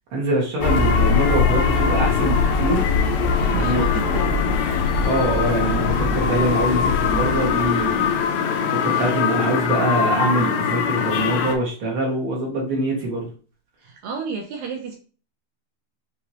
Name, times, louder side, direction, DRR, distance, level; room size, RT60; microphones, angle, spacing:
voice 1, 0.1-2.9 3.5-3.8 5.0-8.2 8.7-13.3, right 1 dB, 55° right, -2 dB, 1.7 m, -24 dB
sound 1, 0.6-11.6, left 5 dB, 75° left, 1.7 m, -21 dB
voice 2, 3.4-4.4 13.8-15.0, right 5 dB, 75° right, 2 dB, 1.8 m, -31 dB
6.0 x 2.8 x 2.7 m, 0.38 s
omnidirectional pair, 3.8 m